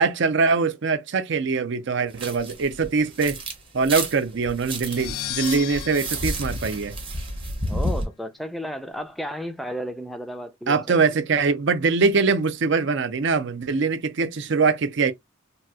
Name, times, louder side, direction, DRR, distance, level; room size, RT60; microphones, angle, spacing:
voice 1, 0.0-3.4 3.7-6.9 10.7-15.1, right 4 dB, 55° right, 0.5 m, -22 dB
sound 1, 2.1-3.5 3.8-8.0, right 1 dB, 25° right, 0.8 m, -31 dB
sound 2, 4.8-7.6, left 14 dB, 85° left, 0.3 m, -36 dB
voice 2, 7.7-11.1, equal, ahead, 0.4 m, -33 dB
4.0 x 2.4 x 2.3 m
head